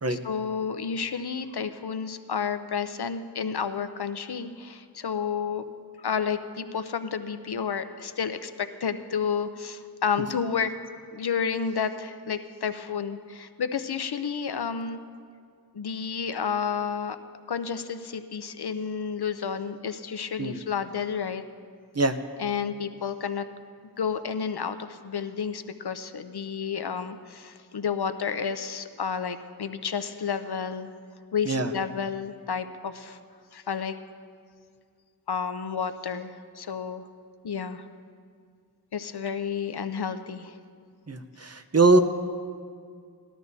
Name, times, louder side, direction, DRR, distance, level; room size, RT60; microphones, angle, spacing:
voice 1, 0.1-5.6 6.0-10.7 11.1-15.0 15.7-17.2 17.5-21.4 22.4-23.4 24.0-30.9 31.3-33.2 33.5-33.9 35.3-37.0 37.4-37.8 38.9-40.5, left 6 dB, 80° left, 10 dB, 0.6 m, -31 dB
voice 2, 41.1-42.0, right 3 dB, 40° right, 7 dB, 0.7 m, -22 dB
19.0 x 12.5 x 2.7 m, 2.2 s
wide cardioid pair, 45°, 38 cm